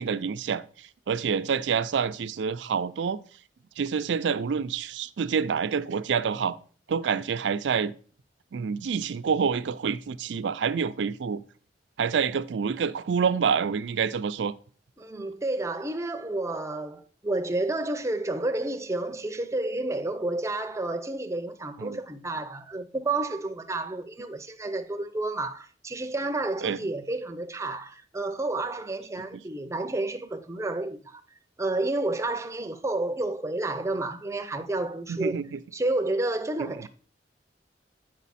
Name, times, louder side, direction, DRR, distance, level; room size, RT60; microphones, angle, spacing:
voice 1, 0.0-3.2 3.8-6.6 6.9-7.9 8.5-11.4 12.0-14.5 21.8-22.0 26.6-26.8 35.1-35.6, right 6 dB, 85° right, 0.4 m, -27 dB
voice 2, 15.0-31.2 31.6-35.4 35.7-36.9, right 2 dB, 15° right, 0.5 m, -30 dB
8.3 x 4.9 x 4.1 m
head